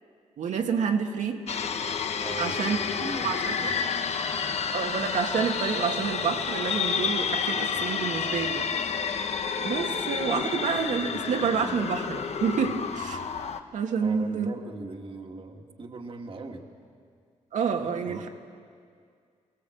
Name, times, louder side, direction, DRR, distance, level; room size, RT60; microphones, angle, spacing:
voice 1, 0.4-1.4 2.4-2.8 3.2-3.5 4.7-8.7 9.1-13.2 13.7-14.5 17.5-18.3, right 6 dB, 80° right, 4 dB, 1.9 m, -28 dB
sound 1, 1.5-13.6, left 6 dB, 60° left, 1.1 m, -30 dB
voice 2, 2.2-2.6 3.0-3.9 14.0-16.7 17.8-18.3, right 3 dB, 45° right, 3 dB, 1.9 m, -40 dB
24.0 x 17.5 x 7.8 m, 2.2 s
cardioid pair, 90°, 13 cm